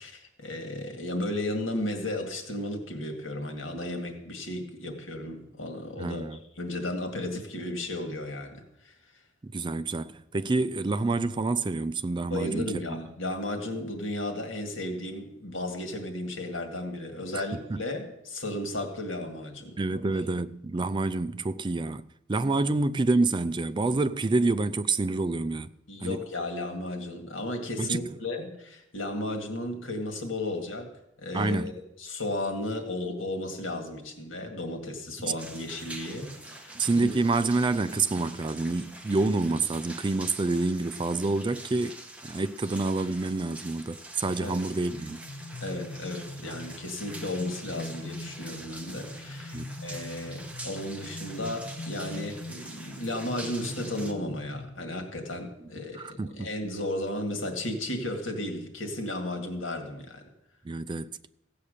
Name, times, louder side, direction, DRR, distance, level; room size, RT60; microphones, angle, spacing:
voice 1, 0.0-9.0 12.3-20.2 25.9-30.9 31.2-31.7 32.0-37.1 44.4-44.6 45.6-60.2, left 1 dB, 85° left, 2.0 m, -34 dB
voice 2, 6.0-6.4 9.4-13.0 17.5-17.8 19.8-25.7 26.0-26.2 27.8-28.0 31.3-31.7 35.2-35.3 36.7-45.2 49.5-49.7 55.9-56.5 60.6-61.1, right 3 dB, 25° right, 0.4 m, -28 dB
sound 1, 35.4-54.1, right 2 dB, 5° right, 1.2 m, -45 dB
sound 2, 44.9-55.3, left 2 dB, 65° left, 0.8 m, -42 dB
15.5 x 8.5 x 6.6 m
head